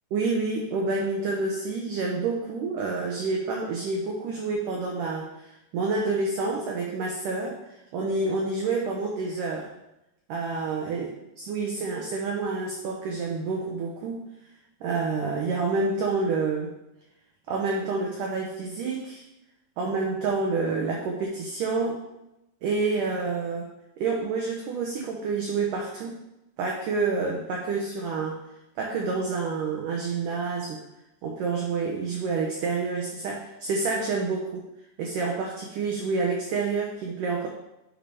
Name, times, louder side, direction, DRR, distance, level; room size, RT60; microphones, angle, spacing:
voice 1, 0.1-7.6 7.9-9.7 10.3-11.1 11.4-14.2 14.8-16.7 17.5-19.2 19.8-22.0 22.6-23.7 24.0-26.2 26.6-28.4 28.8-30.8 31.2-34.7 35.0-37.5, right 4 dB, 85° right, -1 dB, 1.8 m, -28 dB
9.1 x 3.4 x 5.3 m, 0.90 s
omnidirectional pair, 4.9 m